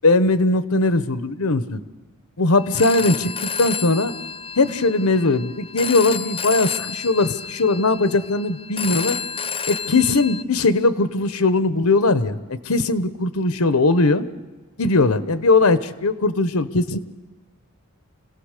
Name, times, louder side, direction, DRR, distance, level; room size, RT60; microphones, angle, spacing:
voice 1, 0.0-1.8 2.4-4.1 4.6-9.2 9.7-14.3 14.8-17.0, left 3 dB, 85° left, 12 dB, 1.1 m, -19 dB
Telephone, 2.6-10.4, left 6 dB, 25° left, 0.6 m, -31 dB
27.0 x 17.0 x 6.7 m, 1.2 s
head